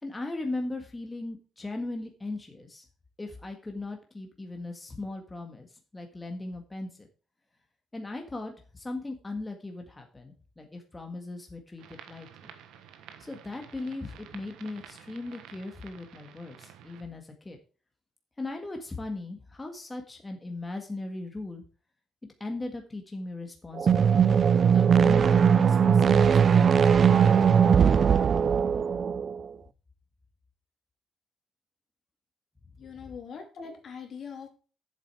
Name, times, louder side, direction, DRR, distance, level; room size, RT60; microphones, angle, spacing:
voice 1, 0.0-2.8 3.2-5.7 5.9-7.1 7.9-12.5 13.2-17.6 18.4-21.6 22.4-24.4 24.6-26.9, left 2 dB, 20° left, 3 dB, 1.7 m, -38 dB
sound 1, 11.8-17.0, right 9 dB, 90° right, 1.3 m, -51 dB
sound 2, 23.8-29.4, right 7 dB, 50° right, 0.4 m, -20 dB
voice 2, 32.8-34.5, left 6 dB, 60° left, 4 dB, 2.7 m, -42 dB
8.0 x 7.6 x 4.7 m, 0.37 s
cardioid pair, 90°, 0 cm